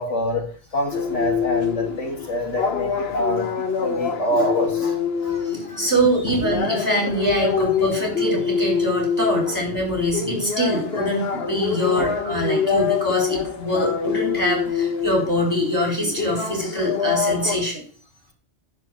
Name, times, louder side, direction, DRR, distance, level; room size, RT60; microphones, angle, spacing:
voice 1, 0.0-5.0 5.2-5.3 6.2-6.4 9.5-9.6 12.0-12.1, left 1 dB, 75° left, 2 dB, 2.6 m, -26 dB
sound 1, 0.9-17.5, left 6 dB, 55° left, 1.6 m, -25 dB
voice 2, 5.4-17.8, equal, 15° right, -1 dB, 4.3 m, -23 dB
10.5 x 5.0 x 7.8 m, 0.43 s
omnidirectional pair, 1.2 m